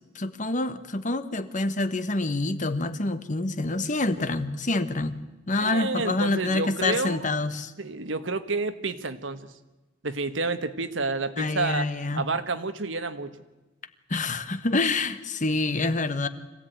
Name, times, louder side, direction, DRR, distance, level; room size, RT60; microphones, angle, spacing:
voice 1, 0.1-5.2 5.5-7.7 11.4-12.3 14.1-16.3, left 2 dB, 40° left, 11 dB, 1.2 m, -27 dB
voice 2, 5.6-7.3 7.8-9.5 10.0-11.8 12.1-13.4, right 3 dB, 75° right, 10 dB, 1.4 m, -29 dB
25.0 x 16.0 x 9.3 m, 1.1 s
head